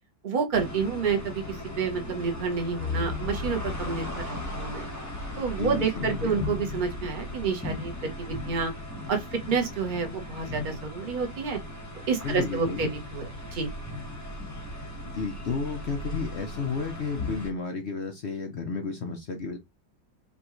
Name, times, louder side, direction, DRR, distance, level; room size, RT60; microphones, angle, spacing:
voice 1, 0.2-4.9 5.4-8.7 9.1-11.6 12.1-13.7, right 5 dB, 35° right, 0.9 m, -29 dB
sound 1, 0.5-17.5, left 2 dB, 10° left, 0.9 m, -37 dB
voice 2, 5.6-6.5 12.2-12.9 15.1-19.6, left 5 dB, 70° left, 0.6 m, -32 dB
5.5 x 2.5 x 3.1 m
omnidirectional pair, 2.0 m